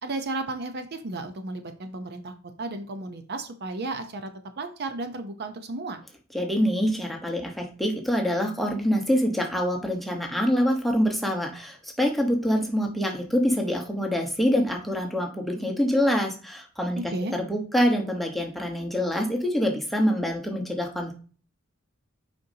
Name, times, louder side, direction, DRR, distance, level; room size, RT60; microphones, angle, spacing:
voice 1, 0.0-2.3 2.6-4.3 4.6-6.0 17.0-17.3, right 2 dB, 50° right, 8 dB, 0.6 m, -33 dB
voice 2, 6.3-17.0 17.3-21.1, equal, ahead, 0 dB, 1.1 m, -25 dB
6.6 x 5.2 x 2.7 m, 0.39 s
head